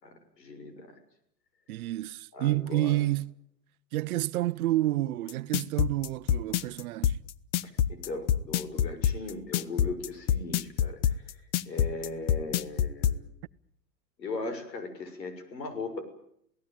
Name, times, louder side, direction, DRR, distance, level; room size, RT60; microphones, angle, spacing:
voice 1, 0.0-0.9 2.3-3.0 7.9-11.2 11.7-13.3 14.2-16.0, left 3 dB, 90° left, 6.5 m, -38 dB
voice 2, 1.7-3.3 3.9-7.2, right 15 dB, 60° right, 1.0 m, -29 dB
sound 1, 5.3-13.2, left 9 dB, 45° left, 1.0 m, -26 dB
28.0 x 18.0 x 9.0 m
hypercardioid pair, 140°, 49 cm